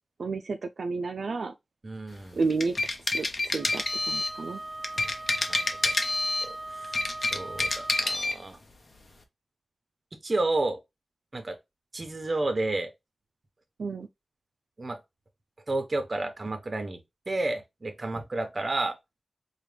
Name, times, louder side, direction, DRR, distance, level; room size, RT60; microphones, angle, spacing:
voice 1, 0.2-1.5 2.4-2.8 3.1-4.6 13.8-14.1, right 4 dB, 85° right, 0.3 m, -31 dB
voice 2, 1.8-2.4 5.0-5.1 5.5-5.9 6.4-8.6 10.1-10.8 11.3-11.6 11.9-12.9 14.8-15.0 15.7-17.0 17.3-19.0, right 2 dB, 45° right, 1.0 m, -31 dB
sound 1, 2.4-4.4 4.8-6.5 6.8-8.4, left 2 dB, 55° left, 0.8 m, -28 dB
Wind instrument woodwind instrument, 3.5-8.3, right 2 dB, 15° right, 1.1 m, -40 dB
4.7 x 2.4 x 3.2 m
wide cardioid pair, 70°, 0 cm